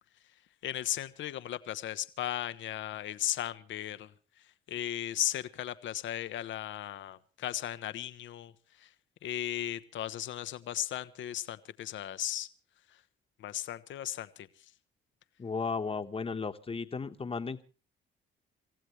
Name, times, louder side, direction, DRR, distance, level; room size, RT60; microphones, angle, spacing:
voice 1, 0.6-4.1 4.7-8.5 9.2-12.5 13.4-14.3, left 12 dB, 70° left, 12 dB, 0.9 m, -36 dB
voice 2, 15.4-17.6, left 4 dB, 30° left, 8 dB, 1.2 m, -35 dB
27.5 x 15.0 x 3.2 m, 0.34 s
cardioid pair, 90°, 20 cm